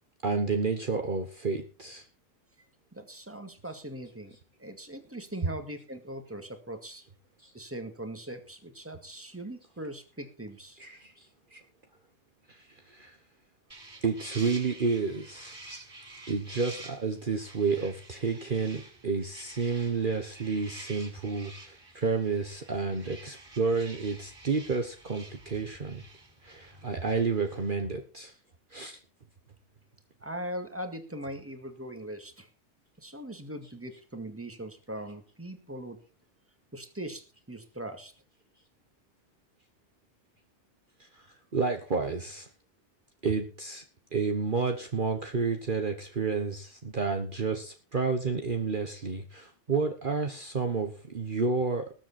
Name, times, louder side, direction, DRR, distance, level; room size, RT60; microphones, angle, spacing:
voice 1, 0.2-2.0 7.4-7.5 10.8-11.6 12.5-13.2 14.0-15.5 16.3-26.0 26.4-28.3 28.7-29.0 41.0-41.3 41.5-42.5 43.2-43.8 44.1-51.9, right 4 dB, 45° right, 5 dB, 1.3 m, -30 dB
voice 2, 2.9-7.0 7.5-10.8 30.2-32.5 33.0-36.0 36.7-38.1, right 1 dB, 10° right, 6 dB, 2.0 m, -40 dB
sound 1, 13.7-27.7, right 2 dB, 25° right, 6.9 m, -49 dB
20.0 x 7.8 x 4.3 m, 0.36 s
omnidirectional pair, 1.2 m